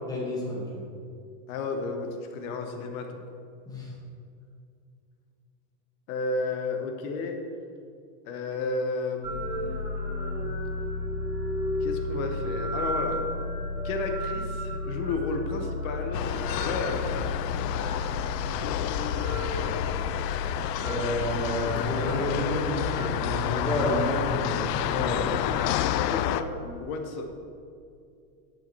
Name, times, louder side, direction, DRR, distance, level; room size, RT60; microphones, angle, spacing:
voice 1, 0.1-0.8 3.7-3.9 20.3-25.4, equal, 10° left, -5 dB, 1.8 m, -31 dB
voice 2, 1.5-3.2 6.1-7.4 8.2-10.5 11.8-13.2 13.8-17.2 26.1-26.5 26.8-27.2, left 3 dB, 60° left, 4 dB, 1.2 m, -32 dB
sound 1, 9.2-26.7, left 1 dB, 15° right, 1.2 m, -34 dB
sound 2, 16.1-26.4, left 12 dB, 90° left, 0.6 m, -29 dB
10.5 x 5.3 x 4.7 m, 2.4 s
supercardioid pair, 155°, 48 cm